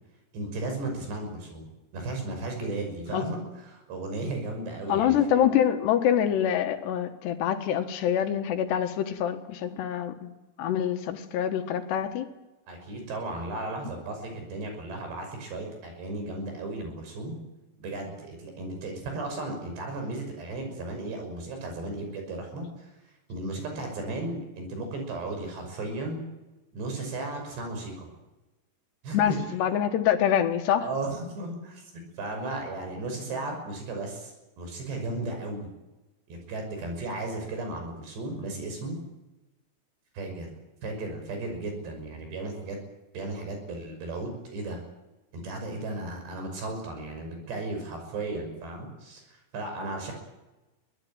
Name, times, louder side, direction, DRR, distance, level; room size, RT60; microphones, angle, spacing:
voice 1, 0.3-5.4 12.7-17.4 17.8-22.9 23.3-26.2 26.7-28.1 29.0-29.4 30.8-31.9 32.2-35.7 36.3-39.0 40.1-40.5 40.8-42.8 43.1-44.8 45.3-50.1, right 2 dB, 80° right, 4 dB, 8.0 m, -35 dB
voice 2, 4.9-10.3 10.6-12.3 29.1-30.9, left 9 dB, 80° left, 8 dB, 3.7 m, -25 dB
23.5 x 18.5 x 9.0 m, 1.1 s
omnidirectional pair, 4.8 m